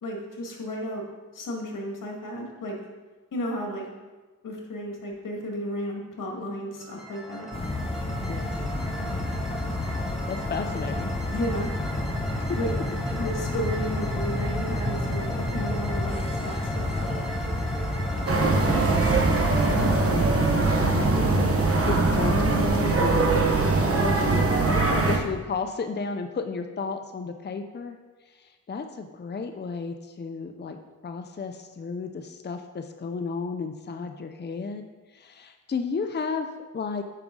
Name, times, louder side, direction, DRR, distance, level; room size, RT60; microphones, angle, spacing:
voice 1, 0.0-1.0 1.3-2.8 3.3-3.9 4.4-7.5 11.3-11.8 12.5-12.7 13.2-17.1, equal, 85° left, 0 dB, 1.7 m, -33 dB
sound 1, 6.8-21.6, right 1 dB, ahead, 1.6 m, -38 dB
sound 2, 7.5-22.6, left 1 dB, 20° left, 0.9 m, -30 dB
voice 2, 8.3-8.6 10.3-11.1 12.5-12.6 18.4-19.1 19.4-28.0 28.3-30.8 31.0-34.8 35.1-36.5 36.7-37.0, left 4 dB, 35° left, 6 dB, 0.6 m, -33 dB
sound 3, 18.3-25.2, right 3 dB, 45° right, 1.1 m, -22 dB
9.1 x 6.0 x 3.8 m, 1.3 s
cardioid pair, 75°, 32 cm